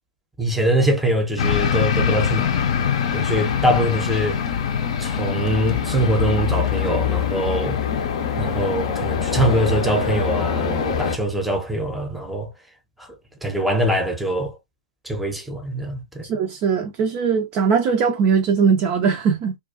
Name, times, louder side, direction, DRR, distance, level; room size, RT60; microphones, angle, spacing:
voice 1, 0.4-2.7 3.1-4.4 5.0-7.8 8.4-12.5 13.0-13.1 13.4-14.6 15.0-16.2, right 1 dB, ahead, 0.7 m, -23 dB
sound 1, 1.4-11.2, left 7 dB, 50° left, 0.5 m, -23 dB
voice 2, 16.2-19.6, right 6 dB, 30° right, 0.4 m, -20 dB
2.4 x 2.2 x 2.4 m
figure-of-eight pair, 120°, 4 cm